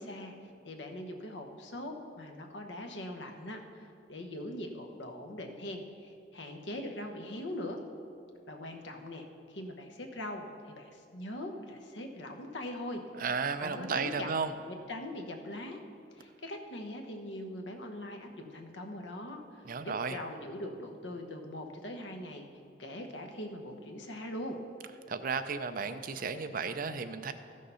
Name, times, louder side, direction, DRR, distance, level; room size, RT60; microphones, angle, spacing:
voice 1, 0.0-7.8 8.5-13.0 13.6-14.3 14.7-15.8 16.1-22.5 22.8-24.6, left 1 dB, 80° left, 4 dB, 1.1 m, -41 dB
voice 2, 13.2-14.5 19.6-20.2 25.1-27.3, right 5 dB, 50° right, 9 dB, 0.5 m, -34 dB
13.5 x 6.5 x 5.6 m, 2.5 s
head